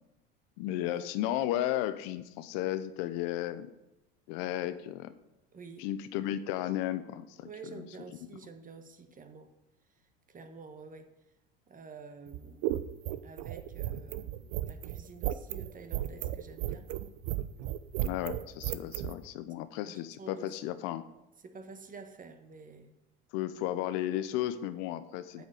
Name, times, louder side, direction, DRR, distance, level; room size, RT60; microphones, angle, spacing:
voice 1, 0.6-3.7 4.3-5.1 5.8-7.8 18.0-21.0 23.3-25.4, left 13 dB, 65° left, 12 dB, 0.8 m, -34 dB
voice 2, 5.5-5.9 7.4-9.5 10.3-11.1 11.7-12.8 13.2-16.9 19.9-20.5 21.4-22.9 25.4-25.5, right 4 dB, 30° right, 8 dB, 1.5 m, -49 dB
sound 1, 12.3-19.1, right 14 dB, 60° right, 0.7 m, -34 dB
8.6 x 6.3 x 7.9 m, 0.94 s
hypercardioid pair, 85°, 29 cm